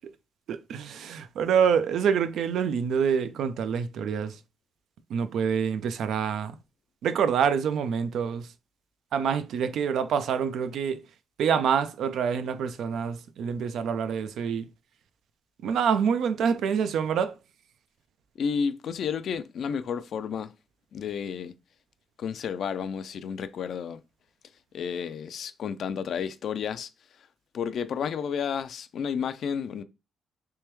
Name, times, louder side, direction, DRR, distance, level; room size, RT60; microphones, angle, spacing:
voice 1, 0.5-4.4 5.1-6.6 7.0-8.5 9.1-11.0 11.4-14.7 15.6-17.3, right 7 dB, 75° right, 0.4 m, -26 dB
voice 2, 18.4-20.5 20.9-21.5 22.2-24.0 24.7-26.9 27.5-29.8, left 7 dB, 60° left, 0.4 m, -31 dB
3.4 x 3.3 x 3.1 m
cardioid pair, 105°, 0 cm